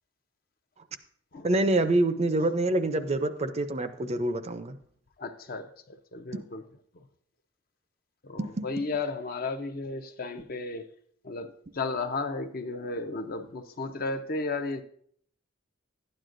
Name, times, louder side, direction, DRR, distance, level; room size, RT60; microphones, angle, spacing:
voice 1, 1.4-4.8 6.3-6.4 8.4-8.7, right 2 dB, 30° right, 10 dB, 0.5 m, -26 dB
voice 2, 5.2-6.6 8.2-10.8 11.2-14.8, left 3 dB, 45° left, 8 dB, 0.6 m, -34 dB
12.0 x 9.2 x 2.5 m, 0.62 s
head